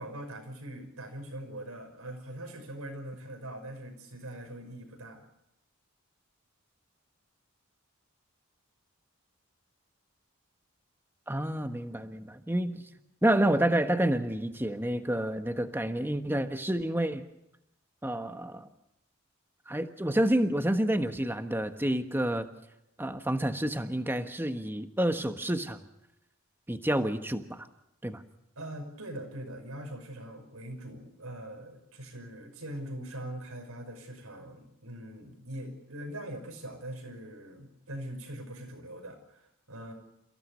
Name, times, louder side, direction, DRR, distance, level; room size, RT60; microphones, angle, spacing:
voice 1, 0.0-5.3 28.6-39.9, right 1 dB, 85° right, 6 dB, 5.7 m, -42 dB
voice 2, 11.3-12.8 13.2-17.2 18.0-18.7 19.7-22.5 23.0-25.8 26.7-27.7 28.0-28.2, right 1 dB, 10° right, 7 dB, 1.3 m, -29 dB
29.5 x 16.5 x 6.7 m, 0.83 s
head